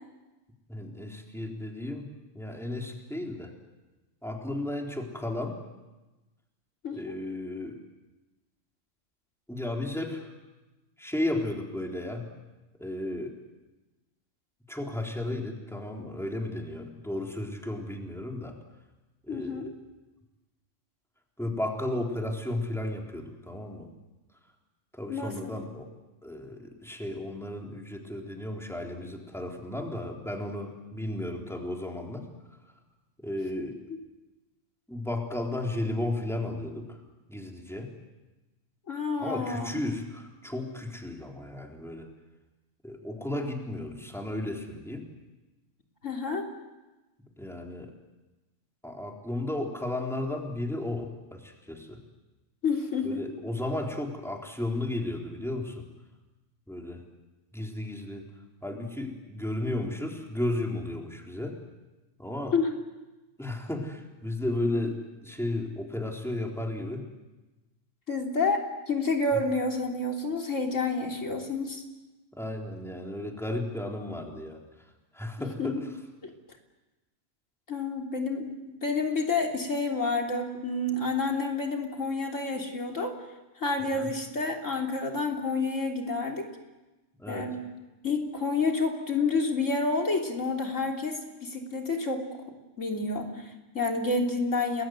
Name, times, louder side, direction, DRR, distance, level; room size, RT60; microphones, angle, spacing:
voice 1, 0.7-3.5 4.2-5.6 6.9-7.8 9.5-10.3 11.0-12.3 12.8-13.3 14.7-18.6 19.3-19.7 21.4-23.9 24.9-25.9 26.2-32.3 33.2-33.8 34.9-37.0 37.3-37.9 39.2-42.1 42.8-45.1 47.4-47.9 48.8-52.0 53.0-55.9 56.7-57.0 57.5-58.3 58.6-61.6 62.2-62.5 63.4-67.1 72.3-74.6 75.1-75.8 83.8-84.1 87.2-87.5, left 1 dB, ahead, 0 dB, 3.8 m, -34 dB
voice 2, 6.8-7.2 19.3-19.7 25.1-25.5 38.9-39.9 46.0-46.5 52.6-53.3 62.5-62.8 68.1-68.6 68.9-71.8 75.4-75.8 76.2-76.3 77.7-83.1 83.6-86.5 87.3-87.6 88.0-92.2 92.8-94.8, left 3 dB, 70° left, 2 dB, 3.7 m, -29 dB
30.0 x 21.0 x 7.9 m, 1.1 s
omnidirectional pair, 1.3 m